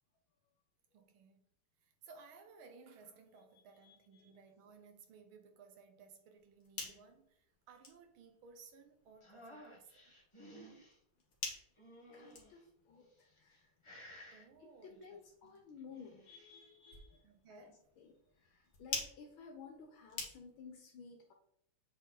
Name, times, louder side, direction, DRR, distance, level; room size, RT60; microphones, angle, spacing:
voice 1, 0.9-1.4 1.8-10.2 14.3-15.6 17.2-17.9, right 5 dB, 80° right, 1.9 m, -60 dB
voice 2, 3.8-4.4 12.1-13.7 14.6-17.7 18.0-21.3, left 5 dB, 75° left, 1.6 m, -55 dB
sound 1, 6.4-20.8, left 4 dB, 50° left, 2.1 m, -50 dB
sound 2, 9.2-11.0 11.8-12.6 13.3-13.6 13.8-14.5 15.8-16.5, equal, 15° left, 1.5 m, -56 dB
7.7 x 4.4 x 4.1 m
omnidirectional pair, 2.3 m